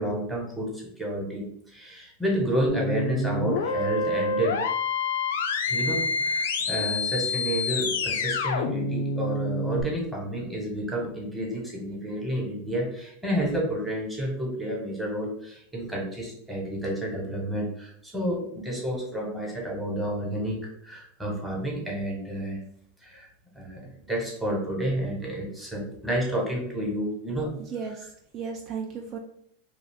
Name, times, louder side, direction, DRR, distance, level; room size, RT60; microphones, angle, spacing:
voice 1, 0.0-4.6 5.7-22.6 23.0-23.3 23.5-27.5, right 1 dB, 5° right, -2 dB, 1.1 m, -30 dB
sound 1, 2.7-9.8, left 3 dB, 85° left, 0.4 m, -27 dB
voice 2, 27.6-29.2, right 6 dB, 45° right, 3 dB, 0.3 m, -35 dB
2.5 x 2.3 x 3.5 m, 0.67 s
hypercardioid pair, 120°, 0 cm